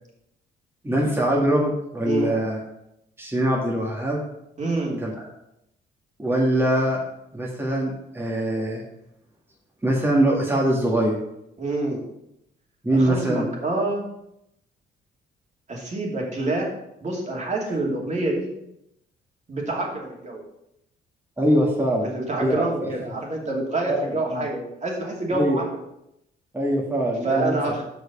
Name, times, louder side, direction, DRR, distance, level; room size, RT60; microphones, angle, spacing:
voice 1, 0.8-2.6 3.2-4.2 5.0-5.3 6.2-7.0 7.3-8.8 9.8-11.2 12.8-13.5 21.4-22.1 22.4-22.9 23.9-24.5 25.3-25.6 26.5-27.8, right 1 dB, 10° right, -4 dB, 1.7 m, -23 dB
voice 2, 2.0-2.4 4.6-5.0 11.6-12.0 12.9-14.1 15.7-16.7 17.0-18.5 19.5-20.4 22.1-25.7 27.2-27.8, right 2 dB, 35° right, -1 dB, 2.7 m, -27 dB
6.2 x 5.3 x 6.9 m, 0.81 s
cardioid pair, 90°, 20 cm